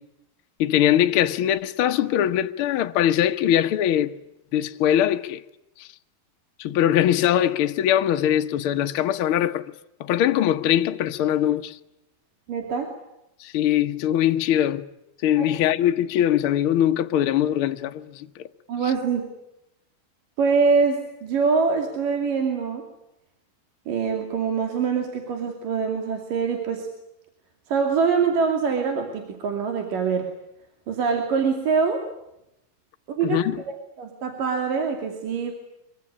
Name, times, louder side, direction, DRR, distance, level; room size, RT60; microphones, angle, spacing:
voice 1, 0.6-4.1 4.5-5.4 5.8-5.9 6.6-9.6 10.0-11.8 13.4-14.8 15.2-18.5 33.2-33.5, left 11 dB, 90° left, 1.1 m, -22 dB
voice 2, 12.5-12.9 15.4-15.5 18.7-19.3 20.4-22.9 23.9-26.9 27.7-30.3 30.9-32.1 33.1-35.5, right 5 dB, 65° right, 4.3 m, -24 dB
25.0 x 23.5 x 9.8 m
omnidirectional pair, 4.2 m